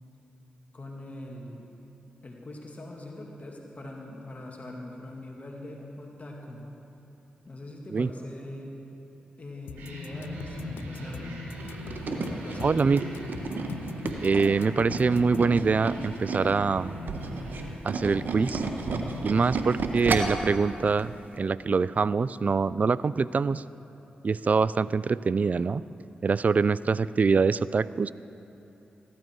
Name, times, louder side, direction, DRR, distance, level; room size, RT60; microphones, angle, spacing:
voice 1, 0.7-1.7 2.2-6.7 7.5-8.9 9.4-11.4 11.8-12.9, left 1 dB, 45° left, -1 dB, 2.1 m, -42 dB
sound 1, 9.7-15.5, left 9 dB, 85° left, 0.4 m, -45 dB
sound 2, 9.8-20.3, equal, 85° right, 2.5 m, -39 dB
Tools, 11.6-16.6 16.9-20.5 20.9-21.1 21.4-21.5, right 4 dB, 65° right, 1.2 m, -32 dB
voice 2, 12.6-13.0 14.2-16.9 17.8-18.6 19.2-23.6 24.2-25.8 26.2-28.1, right 4 dB, 45° right, 18 dB, 0.3 m, -24 dB
15.5 x 12.0 x 4.6 m, 2.9 s
supercardioid pair, 40°, 4 cm